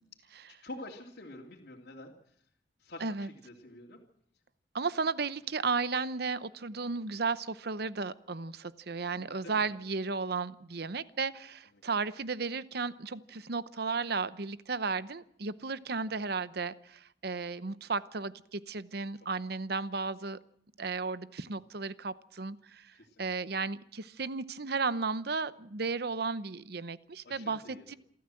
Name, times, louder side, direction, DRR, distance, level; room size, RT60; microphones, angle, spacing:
voice 1, 0.5-2.1 2.8-4.0 9.2-9.7 23.0-23.3 27.2-28.0, left 2 dB, 60° left, -3 dB, 2.8 m, -48 dB
voice 2, 4.7-20.4 20.8-28.0, right 4 dB, 60° right, 15 dB, 0.9 m, -34 dB
27.5 x 13.5 x 7.7 m, 0.72 s
head